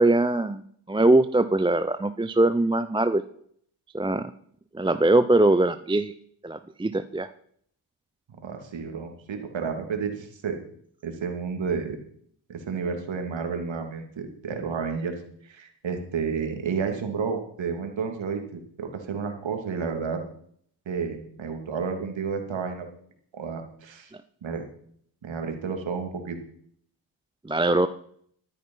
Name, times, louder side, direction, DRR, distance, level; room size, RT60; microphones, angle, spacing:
voice 1, 0.0-3.2 3.9-4.3 4.7-6.1 6.4-7.3 27.4-27.9, right 2 dB, 10° right, 11 dB, 0.6 m, -22 dB
voice 2, 8.4-10.6 11.0-12.0 12.5-15.1 15.4-20.2 20.9-22.9 23.3-24.1 24.4-24.6 25.2-26.4, right 5 dB, 65° right, 5 dB, 2.9 m, -31 dB
13.5 x 9.3 x 5.6 m, 0.63 s
cardioid pair, 60°, 49 cm